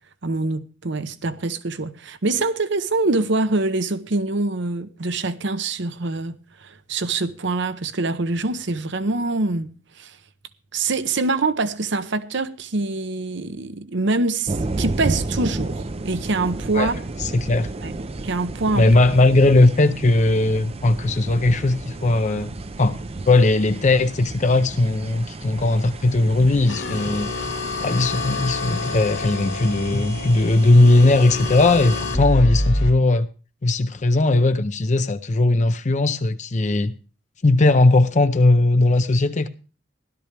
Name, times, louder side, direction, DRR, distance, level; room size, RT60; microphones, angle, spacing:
voice 1, 0.2-9.7 10.0-10.2 10.7-17.0 17.8-18.0 18.2-18.9, right 3 dB, 65° right, 0.9 m, -25 dB
sound 1, 14.5-32.0, right 2 dB, 30° right, 0.5 m, -32 dB
voice 2, 17.2-17.7 18.8-22.5 22.8-23.0 23.3-27.3 27.8-33.3 33.6-36.9 37.4-39.5, left 2 dB, 40° left, 0.6 m, -18 dB
sound 2, 26.7-32.9, left 2 dB, 70° left, 2.5 m, -27 dB
16.0 x 12.0 x 3.4 m
head